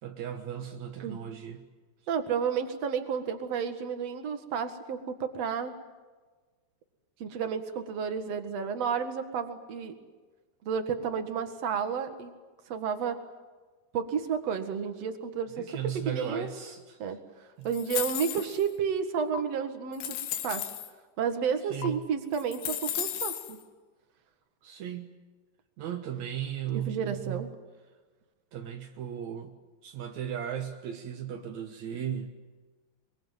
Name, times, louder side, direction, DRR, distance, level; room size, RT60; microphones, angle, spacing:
voice 1, 0.0-1.6 15.6-17.2 17.6-17.7 21.7-22.0 24.6-25.1 25.8-27.5 28.5-29.5 29.8-32.3, right 9 dB, 70° right, 4 dB, 1.7 m, -36 dB
voice 2, 2.1-5.7 7.2-9.9 10.6-12.3 12.7-13.2 13.9-15.7 16.1-16.5 17.0-20.2 20.4-20.6 21.2-23.6 26.7-27.5, right 7 dB, 50° right, 8 dB, 2.1 m, -31 dB
sound 1, 17.7-18.7 19.3-19.4 19.9-20.9 21.8-21.9 22.3-23.6, left 11 dB, 75° left, 3.5 m, -34 dB
24.0 x 22.5 x 9.3 m, 1.3 s
omnidirectional pair, 5.2 m